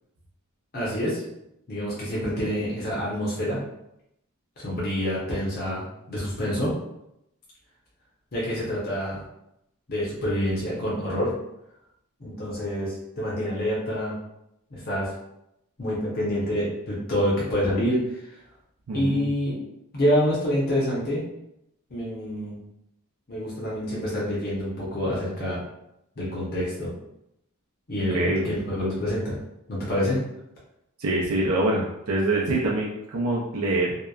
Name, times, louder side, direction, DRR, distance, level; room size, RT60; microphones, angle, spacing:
voice 1, 0.7-1.2 1.7-3.6 4.6-6.7 8.3-9.2 9.9-11.3 12.2-14.1 14.7-15.1 15.8-18.2 18.9-19.6 19.9-21.2 21.9-22.6 23.3-25.6 26.2-26.9 27.9-29.4 29.7-30.2, equal, 45° left, -7 dB, 0.7 m, -27 dB
voice 2, 18.9-19.2 28.1-28.5 31.0-34.0, right 2 dB, 85° right, -4 dB, 0.4 m, -25 dB
2.7 x 2.1 x 2.3 m, 0.82 s
head